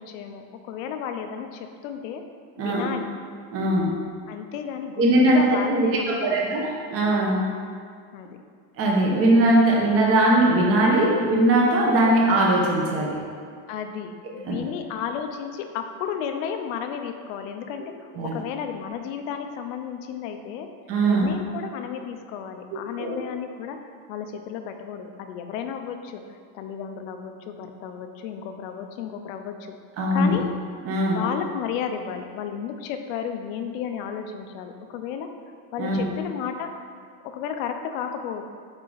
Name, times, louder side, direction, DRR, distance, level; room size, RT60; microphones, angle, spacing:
voice 1, 0.0-2.2 2.6-3.1 4.3-6.4 8.1-8.3 13.7-20.7 21.1-23.8 24.1-26.2 26.5-29.6 30.1-30.4 31.1-35.3 35.7-36.7 37.3-38.4, left 8 dB, 80° left, 6 dB, 0.7 m, -33 dB
voice 2, 3.5-4.0 5.0-7.4 8.8-13.1 14.4-14.6 18.1-18.4 20.9-21.3 23.0-23.2 30.0-30.4 30.8-31.2 35.8-36.0, right 1 dB, 35° right, -2 dB, 1.0 m, -20 dB
5.6 x 4.9 x 4.0 m, 2.1 s
cardioid pair, 160°, 39 cm